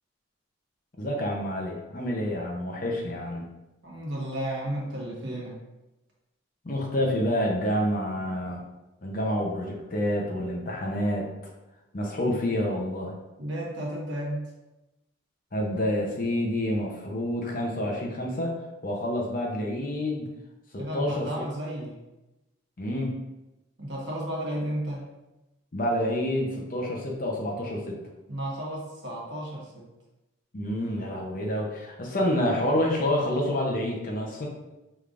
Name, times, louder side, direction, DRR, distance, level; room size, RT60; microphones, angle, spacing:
voice 1, 1.0-3.5 6.6-8.6 9.0-11.3 11.9-13.1 15.5-18.6 18.8-20.3 20.9-21.3 22.8-23.1 25.7-28.0 30.5-34.5, left 1 dB, 40° left, 0 dB, 0.7 m, -28 dB
voice 2, 3.8-5.6 13.4-14.5 20.7-22.0 23.8-25.1 28.3-29.9, right 1 dB, 60° right, -4 dB, 1.2 m, -33 dB
5.1 x 3.4 x 2.5 m, 1.0 s
head